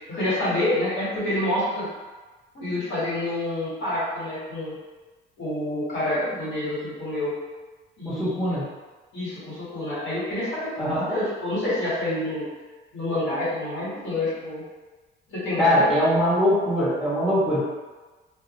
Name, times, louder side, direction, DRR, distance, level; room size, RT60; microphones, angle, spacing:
voice 1, 0.1-1.9 2.5-4.7 5.4-7.3 8.0-8.6 9.1-12.4 12.9-14.6 15.3-15.9, left 1 dB, 70° left, -9 dB, 1.3 m, -28 dB
voice 2, 8.0-8.6 10.8-11.1 15.6-17.7, equal, ahead, -11 dB, 1.2 m, -22 dB
2.3 x 2.3 x 2.9 m, 1.3 s
cardioid pair, 90°, 20 cm